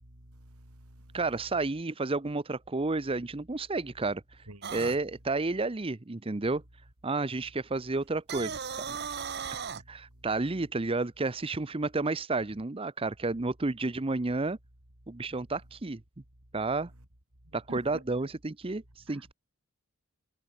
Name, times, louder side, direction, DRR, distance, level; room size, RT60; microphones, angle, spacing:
voice 1, 0.0-1.2 4.5-4.9 17.7-18.0 19.1-19.2, right 1 dB, 85° right, 4.5 m, -48 dB
voice 2, 1.1-4.2 4.7-6.6 7.0-9.0 9.9-14.6 15.1-16.0 16.5-16.9 17.5-19.3, right 3 dB, 25° right, 0.7 m, -31 dB
sound 1, 4.6-5.0 8.2-9.8, right 6 dB, 50° right, 1.6 m, -36 dB
head